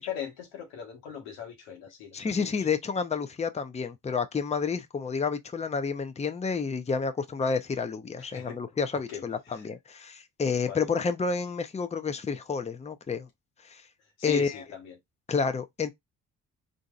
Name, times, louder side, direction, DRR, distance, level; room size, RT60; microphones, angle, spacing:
voice 1, 0.0-2.5 8.2-8.5 9.1-9.2 10.7-10.8 14.2-14.9, left 8 dB, 85° left, 1.3 m, -38 dB
voice 2, 2.1-13.3 13.6-13.8 14.2-14.6 15.3-15.9, left 5 dB, 20° left, 0.6 m, -30 dB
3.8 x 2.6 x 2.4 m
hypercardioid pair, 55°, 36 cm